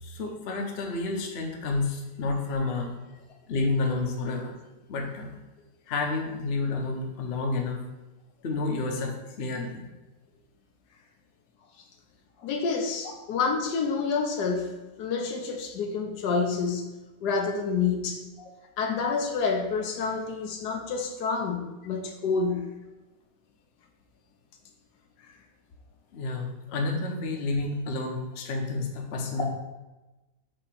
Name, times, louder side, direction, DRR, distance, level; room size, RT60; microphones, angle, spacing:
voice 1, 0.0-3.2 3.5-4.5 4.9-5.3 5.9-7.8 8.4-9.9 12.4-12.5 13.0-13.1 18.4-18.5 26.1-29.4, left 3 dB, 45° left, 2 dB, 0.9 m, -30 dB
voice 2, 12.4-14.7 15.0-16.9 17.2-18.2 18.8-22.7, left 5 dB, 75° left, 3 dB, 1.3 m, -28 dB
6.6 x 2.9 x 5.8 m, 1.1 s
omnidirectional pair, 1.8 m